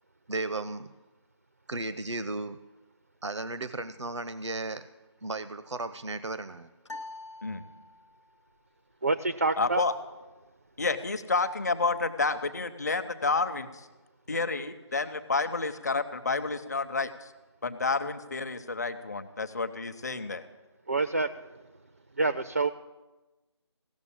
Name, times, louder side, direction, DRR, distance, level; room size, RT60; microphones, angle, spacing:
voice 1, 0.3-0.9 1.7-2.6 3.2-4.9 5.2-6.7, right 2 dB, 75° right, 13 dB, 0.6 m, -35 dB
sound 1, 6.8-8.3, left 2 dB, 85° left, 0.6 m, -44 dB
voice 2, 9.0-9.8 20.9-21.5 22.2-22.7, right 3 dB, 35° right, 9 dB, 0.3 m, -27 dB
voice 3, 9.6-9.9 10.8-13.9 14.3-17.3 17.6-20.5, left 3 dB, 35° left, 10 dB, 0.8 m, -30 dB
16.5 x 6.8 x 8.6 m, 1.1 s
figure-of-eight pair, 160°, 15 cm